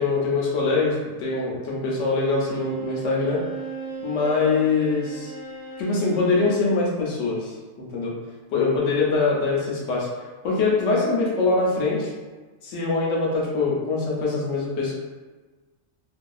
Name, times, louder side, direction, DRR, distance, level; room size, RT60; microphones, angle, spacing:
voice 1, 0.0-3.4 4.0-5.3 5.8-8.1 8.5-10.1 10.4-12.1 12.6-14.9, left 3 dB, 75° left, -4 dB, 1.0 m, -23 dB
Bowed string instrument, 2.4-6.7, right 3 dB, 75° right, 0.9 m, -37 dB
2.6 x 2.3 x 2.3 m, 1.3 s
omnidirectional pair, 1.3 m